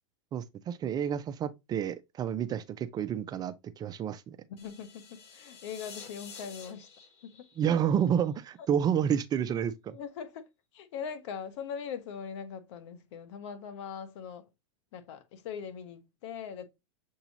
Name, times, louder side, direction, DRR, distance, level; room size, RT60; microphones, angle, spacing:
voice 1, 0.3-4.4 7.6-10.0, right 8 dB, 25° right, 0.3 m, -30 dB
voice 2, 4.5-6.9 7.2-7.5 9.9-14.5 14.9-16.7, left 7 dB, 65° left, 0.8 m, -41 dB
sound 1, 4.6-8.6, left 6 dB, 40° left, 1.1 m, -50 dB
6.8 x 2.8 x 2.8 m
hypercardioid pair, 115°, 16 cm